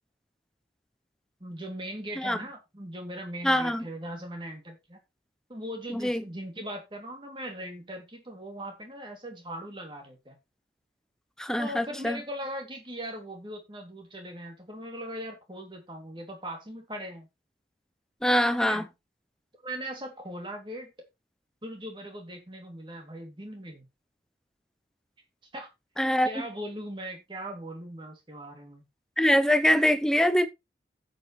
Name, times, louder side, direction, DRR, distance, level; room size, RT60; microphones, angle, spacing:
voice 1, 1.4-5.0 5.5-10.4 11.6-17.3 18.6-18.9 19.6-20.9 21.6-23.9 25.5-25.7 26.2-28.9, right 1 dB, 25° right, 2.5 m, -39 dB
voice 2, 3.4-3.9 5.9-6.2 11.4-12.2 18.2-18.8 26.0-26.3 29.2-30.5, equal, 5° left, 0.7 m, -24 dB
12.5 x 7.9 x 3.1 m
head